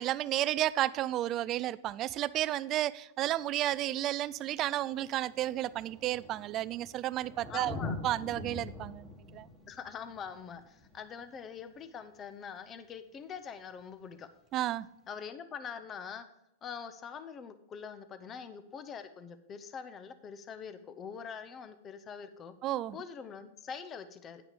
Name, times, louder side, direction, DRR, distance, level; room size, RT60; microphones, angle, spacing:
voice 1, 0.0-7.8 8.0-9.5 14.5-14.9 22.6-23.0, right 14 dB, 35° right, 18 dB, 0.3 m, -32 dB
Thunder, 3.3-3.4 4.4-4.5 4.7-12.0 13.7-13.8, left 2 dB, ahead, 1.9 m, -44 dB
voice 2, 7.5-8.0 9.7-14.3 15.1-16.3 16.6-22.5 22.9-24.4, left 6 dB, 25° left, 11 dB, 0.7 m, -44 dB
9.6 x 6.0 x 5.1 m, 0.80 s
hypercardioid pair, 130°, 0 cm